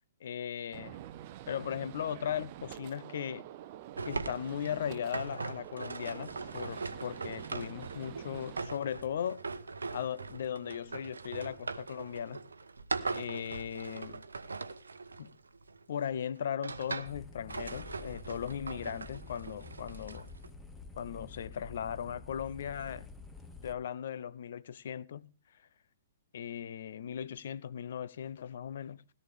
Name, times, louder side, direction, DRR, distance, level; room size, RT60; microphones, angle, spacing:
voice 1, 0.2-1.0 1.5-3.4 4.1-9.4 9.9-12.4 13.1-14.2 15.2-15.3 15.9-20.3 20.9-23.1 23.6-25.3 26.3-29.0, left 8 dB, 55° left, 0.6 m, -38 dB
Gunshot gunfire, 0.7-8.6, right 12 dB, 40° right, 0.7 m, -47 dB
sound 1, 4.0-15.8 16.4-17.2 17.5-20.5, right 4 dB, 70° right, 0.8 m, -41 dB
sound 2, 17.1-23.7, left 3 dB, 10° left, 1.3 m, -49 dB
17.0 x 12.0 x 3.4 m
figure-of-eight pair, 115°, 0 cm